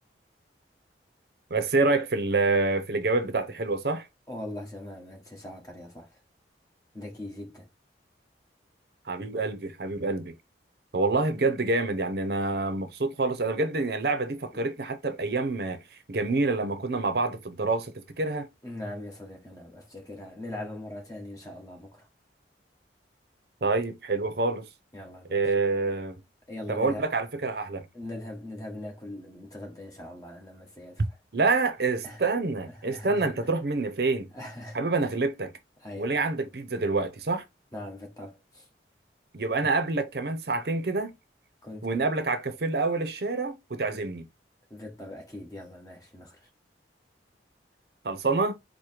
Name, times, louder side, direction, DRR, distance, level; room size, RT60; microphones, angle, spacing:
voice 1, 1.5-4.1 9.1-10.3 10.9-15.8 16.1-18.5 23.6-24.7 25.3-26.2 26.7-27.9 31.3-34.3 34.7-35.5 36.0-37.4 39.3-41.1 41.8-44.3 48.0-48.6, right 3 dB, 60° right, 0.6 m, -27 dB
voice 2, 4.3-6.2 6.9-7.7 18.6-22.1 24.9-25.5 26.5-27.0 27.9-31.2 32.0-32.2 32.7-33.3 34.3-35.1 35.8-36.1 37.7-38.7 41.6-42.0 44.7-46.5, left 1 dB, 20° left, 1.4 m, -41 dB
4.8 x 2.1 x 4.5 m
head